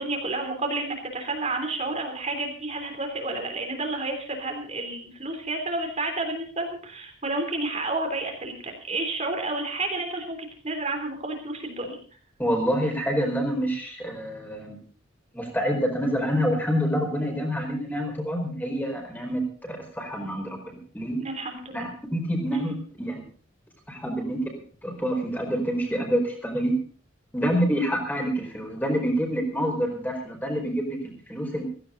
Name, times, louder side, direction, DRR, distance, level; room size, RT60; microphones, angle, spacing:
voice 1, 0.0-12.0 21.2-21.9 22.5-22.8, right 2 dB, 35° right, 4 dB, 3.3 m, -30 dB
voice 2, 12.4-14.8 15.3-21.2 21.7-23.2 23.9-24.5 24.8-26.7 27.3-31.6, equal, 10° left, 2 dB, 4.7 m, -27 dB
16.5 x 16.0 x 3.9 m, 0.42 s
head